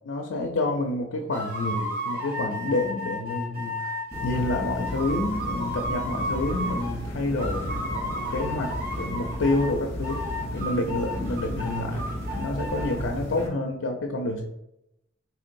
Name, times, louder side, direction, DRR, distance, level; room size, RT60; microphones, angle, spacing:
voice 1, 0.0-3.9 4.2-10.2 10.5-14.4, left 2 dB, 85° left, 2 dB, 0.5 m, -28 dB
sound 1, 1.3-7.0 7.4-9.7 10.0-12.9, left 1 dB, 50° right, 1.0 m, -33 dB
sound 2, 4.1-13.5, equal, 15° left, 1.3 m, -34 dB
4.4 x 3.4 x 2.6 m, 0.86 s
head